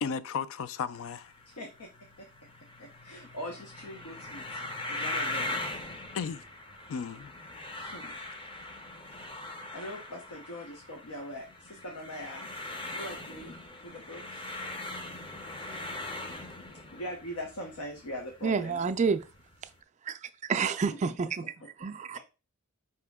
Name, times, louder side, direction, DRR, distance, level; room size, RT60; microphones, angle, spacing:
voice 1, 0.0-1.3 6.1-6.4 6.9-7.3, left 6 dB, 65° left, 0.4 m, -34 dB
sound 1, 0.9-19.8, left 2 dB, 25° left, 0.6 m, -41 dB
voice 2, 1.5-1.9 2.2-2.3 2.8-4.6 4.9-5.6 7.8-8.2 9.7-12.5 12.8-13.6 13.8-14.2 16.7-18.8 21.6-21.7, equal, 85° left, 0.8 m, -41 dB
voice 3, 18.4-19.2 20.1-21.4 21.8-22.2, right 5 dB, 35° right, 0.3 m, -29 dB
5.1 x 2.9 x 3.5 m
head